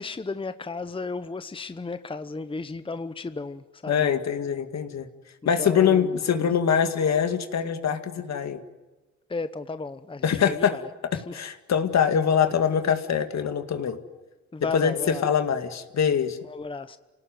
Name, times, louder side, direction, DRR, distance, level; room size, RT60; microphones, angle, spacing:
voice 1, 0.0-4.1 5.6-6.5 9.3-10.9 11.1-11.4 14.5-15.2 16.4-17.0, left 3 dB, 20° left, 0.9 m, -34 dB
voice 2, 3.9-5.1 5.4-8.6 10.2-10.8 11.0-14.0 14.7-16.4, left 7 dB, 65° left, 2.2 m, -24 dB
28.0 x 18.0 x 9.3 m
cardioid pair, 80°, 30 cm